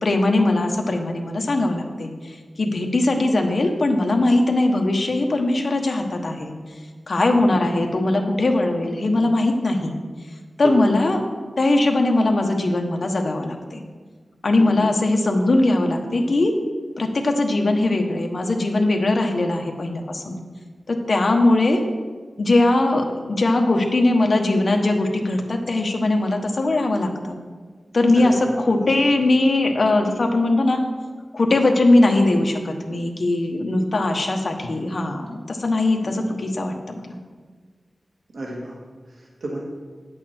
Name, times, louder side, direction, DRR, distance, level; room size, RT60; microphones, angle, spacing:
voice 1, 0.0-6.5 7.1-9.9 10.6-11.2 11.6-13.8 14.4-16.5 17.0-20.4 20.9-21.8 22.4-27.4 27.9-30.8 31.3-35.2 35.5-37.1, left 2 dB, 55° left, 3 dB, 1.2 m, -20 dB
voice 2, 10.6-11.0 14.5-14.7 28.1-28.3 29.0-29.1 35.0-35.1 36.0-36.1 38.3-38.8 39.1-39.6, right 1 dB, 75° right, -3 dB, 1.7 m, -32 dB
10.0 x 8.3 x 4.4 m, 1.5 s
wide cardioid pair, 100°, 0 cm